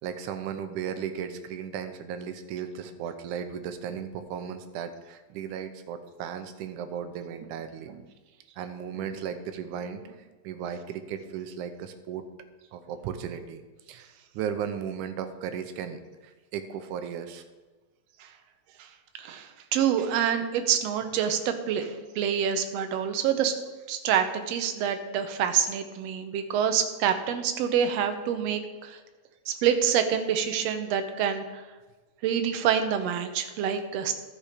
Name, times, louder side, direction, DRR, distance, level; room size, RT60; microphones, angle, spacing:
voice 1, 0.0-8.1 8.6-12.2 12.7-13.6 13.9-17.4, right 8 dB, 90° right, 9 dB, 2.3 m, -36 dB
voice 2, 19.2-23.6 23.9-29.0 29.5-31.6 32.2-34.1, right 8 dB, 70° right, 7 dB, 1.8 m, -27 dB
13.0 x 6.8 x 5.0 m, 1.2 s
omnidirectional pair, 3.5 m